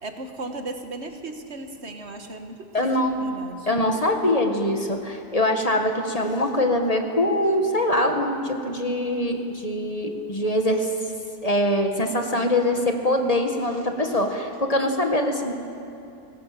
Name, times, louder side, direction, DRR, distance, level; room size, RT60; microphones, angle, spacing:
voice 1, 0.0-3.7, right 2 dB, 45° right, 6 dB, 1.8 m, -36 dB
voice 2, 2.7-3.3 3.7-10.9 11.4-15.5, left 1 dB, 25° left, 4 dB, 1.7 m, -23 dB
25.5 x 19.0 x 7.8 m, 2.7 s
omnidirectional pair, 1.7 m